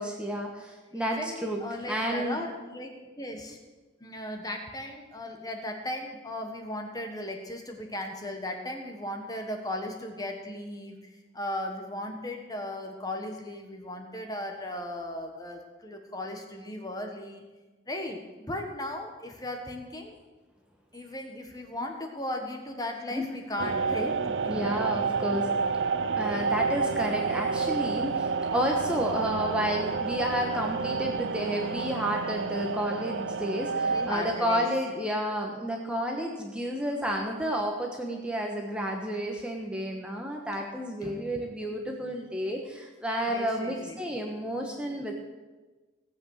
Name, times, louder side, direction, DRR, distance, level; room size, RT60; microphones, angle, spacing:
voice 1, 0.0-1.6 1.9-2.4 23.1-23.2 24.5-25.5 26.2-45.1, equal, 5° right, 0 dB, 1.2 m, -31 dB
voice 2, 0.9-2.9 3.2-3.6 4.0-17.4 17.9-20.1 20.9-24.8 33.8-34.6 41.0-41.4 43.3-44.0, left 1 dB, 20° left, 3 dB, 1.4 m, -37 dB
sound 1, 23.6-34.4, right 5 dB, 60° right, 0.5 m, -29 dB
17.0 x 8.1 x 6.5 m, 1.2 s
head